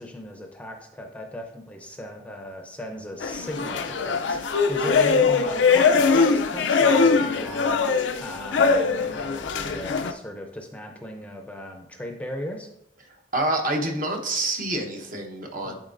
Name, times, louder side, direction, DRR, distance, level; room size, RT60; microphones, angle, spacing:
voice 1, 0.0-12.7 15.6-15.7, equal, 10° left, 2 dB, 0.6 m, -37 dB
sound 1, 3.2-10.1, left 5 dB, 80° left, 0.5 m, -21 dB
voice 2, 13.3-15.7, right 2 dB, 50° right, 2 dB, 1.0 m, -27 dB
10.5 x 4.4 x 2.6 m, 0.77 s
head